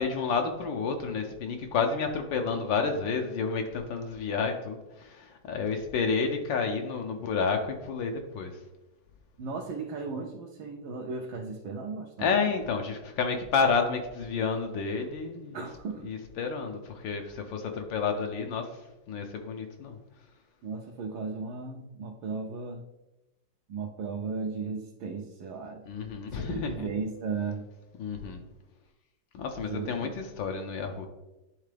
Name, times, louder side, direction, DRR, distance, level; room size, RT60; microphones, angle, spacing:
voice 1, 0.0-8.6 12.2-15.6 16.0-18.7 19.1-20.0 25.9-26.9 28.0-28.4 29.3-31.1, left 5 dB, 75° left, 4 dB, 1.4 m, -30 dB
voice 2, 9.4-12.5 15.5-16.1 17.2-17.3 20.6-22.8 23.7-25.8 26.3-27.7 29.6-30.1, right 4 dB, 85° right, 0 dB, 1.5 m, -36 dB
11.0 x 3.7 x 3.3 m, 1.0 s
omnidirectional pair, 2.1 m